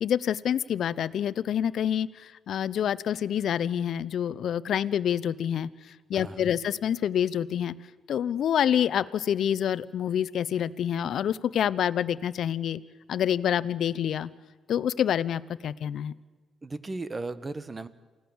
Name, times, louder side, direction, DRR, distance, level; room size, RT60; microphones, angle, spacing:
voice 1, 0.0-5.7 6.1-7.7 8.1-12.8 13.1-14.3 14.7-16.1, left 9 dB, 65° left, 17 dB, 0.7 m, -27 dB
voice 2, 6.1-6.6 16.6-17.9, right 3 dB, 25° right, 14 dB, 1.2 m, -36 dB
28.0 x 16.5 x 7.2 m, 1.3 s
cardioid pair, 90°, 0 cm